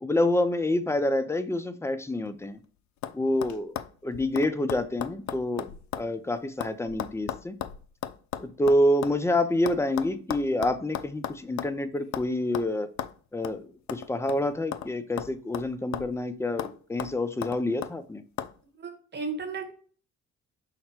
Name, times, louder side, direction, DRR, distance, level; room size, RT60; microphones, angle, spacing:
voice 1, 0.0-2.6 3.1-5.7 6.0-7.6 8.4-12.9 13.3-18.2, left 1 dB, 10° left, 11 dB, 0.4 m, -27 dB
sound 1, 2.3-2.6 3.0-3.2 3.4-6.1 6.4-9.2 9.7-11.8 12.1-12.3 12.5-12.7 13.0-13.1 13.4-13.6 13.9-14.9 15.2-16.2 16.6-16.7 17.0-17.9 18.4-18.5, left 11 dB, 70° left, 0.5 m, -36 dB
voice 2, 18.8-19.7, right 4 dB, 35° right, 5 dB, 1.1 m, -34 dB
5.8 x 2.1 x 4.3 m, 0.43 s
cardioid pair, 90°, 30 cm